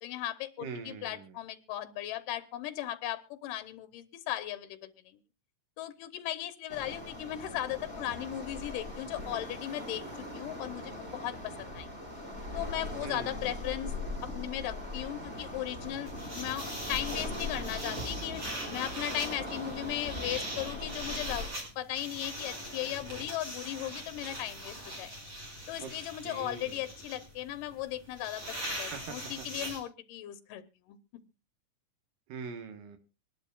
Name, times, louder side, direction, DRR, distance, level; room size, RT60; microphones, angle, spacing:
voice 1, 0.0-4.9 5.8-10.0 10.3-11.9 12.5-13.9 14.3-21.5 21.8-25.2 25.7-30.6 30.9-31.0, left 13 dB, 90° left, 11 dB, 2.5 m, -37 dB
voice 2, 0.6-1.4 13.0-13.5 25.8-25.9 26.2-26.9 28.9-29.5 32.3-33.0, right 5 dB, 85° right, 7 dB, 3.0 m, -43 dB
Waves surf, 6.7-21.5, left 1 dB, 15° right, 5.3 m, -40 dB
sound 1, 16.1-29.8, right 1 dB, 35° right, 6.7 m, -41 dB
25.5 x 11.5 x 2.3 m, 0.28 s
omnidirectional pair, 3.8 m